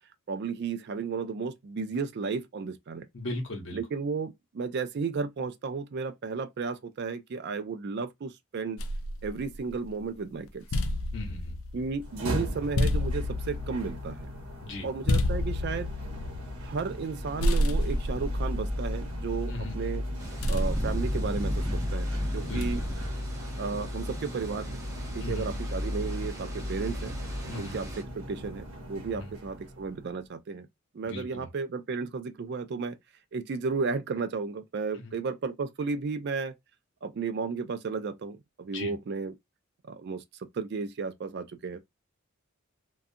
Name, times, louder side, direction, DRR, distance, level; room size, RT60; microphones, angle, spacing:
voice 1, 0.3-3.1 3.7-8.8 9.2-10.7 11.7-14.3 14.8-16.0 16.6-20.0 20.5-22.1 22.3-22.8 23.6-24.8 25.1-27.2 27.5-30.7 30.9-33.0 33.3-36.6 37.0-39.3 39.8-40.2 40.5-41.8, right 4 dB, 50° right, 0.4 m, -33 dB
voice 2, 3.1-3.8 11.1-11.6 14.6-14.9 19.5-19.7 22.4-22.9 25.2-25.5 27.5-27.7 29.1-29.3 31.0-31.5 38.7-38.9, left 2 dB, 55° left, 0.9 m, -37 dB
sound 1, 8.8-10.0 10.5-17.1 17.4-19.7 20.4-21.9 22.6-23.1, left 1 dB, 75° left, 0.4 m, -31 dB
sound 2, 12.0-30.1, equal, 70° right, 0.8 m, -35 dB
sound 3, 20.2-28.0, right 1 dB, 15° right, 0.7 m, -41 dB
2.5 x 2.3 x 2.5 m
head